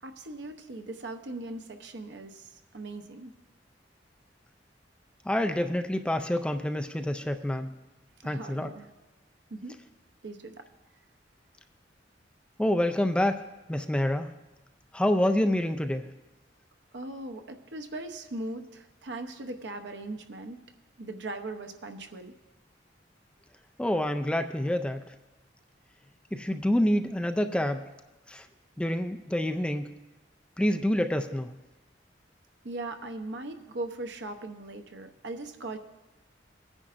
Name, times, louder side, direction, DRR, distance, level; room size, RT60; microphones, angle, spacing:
voice 1, 0.0-3.4 8.2-8.9 9.5-9.8 10.2-10.7 16.9-20.6 21.0-22.4 32.6-35.8, right 2 dB, 70° right, 7 dB, 0.8 m, -39 dB
voice 2, 5.3-7.7 8.2-8.7 12.6-13.4 13.7-14.3 14.9-16.1 23.8-25.0 26.3-27.8 28.3-28.5 28.8-29.9 30.6-31.5, left 1 dB, 5° left, 6 dB, 0.4 m, -27 dB
19.0 x 9.9 x 2.5 m, 1.0 s
head